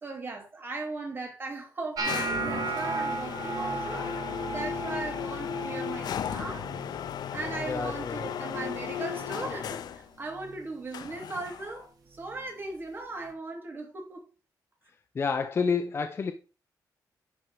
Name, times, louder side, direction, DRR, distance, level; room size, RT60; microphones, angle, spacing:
voice 1, 0.0-6.7 7.3-14.2, right 3 dB, 30° right, 2.7 m, -38 dB
sound 1, 2.0-10.1 10.9-11.8, left 9 dB, 75° left, 0.5 m, -36 dB
sound 2, 2.0-8.1 8.3-8.8 9.2-9.7 10.4-10.6 12.3-12.4, right 3 dB, 60° right, 1.8 m, -36 dB
voice 2, 7.6-8.3 15.1-16.3, left 5 dB, 35° left, 0.6 m, -29 dB
11.0 x 4.5 x 4.7 m
wide cardioid pair, 160°, 7 cm